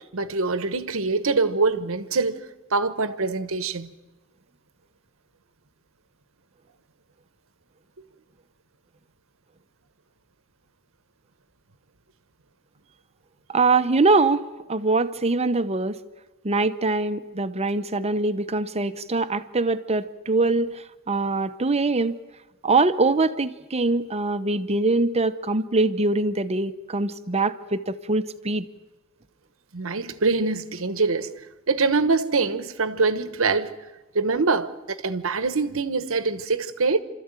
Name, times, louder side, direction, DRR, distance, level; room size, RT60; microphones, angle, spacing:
voice 1, 0.0-2.4 2.7-3.9 29.7-31.3 31.7-33.8 34.1-37.0, right 4 dB, 70° right, 1.1 m, -24 dB
voice 2, 13.5-14.4 14.7-16.0 16.4-20.7 21.1-22.2 22.6-28.7, right 3 dB, 30° right, 0.8 m, -23 dB
29.5 x 13.5 x 9.0 m
head